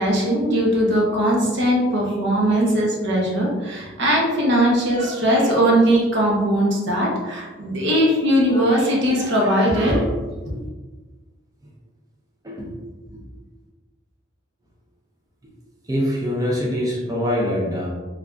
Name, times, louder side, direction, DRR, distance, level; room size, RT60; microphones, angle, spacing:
voice 1, 0.0-10.1 10.5-10.6, equal, 65° right, -2 dB, 0.8 m, -19 dB
voice 2, 15.9-17.9, equal, 20° right, -4 dB, 0.4 m, -24 dB
3.3 x 2.4 x 2.4 m, 1.3 s
head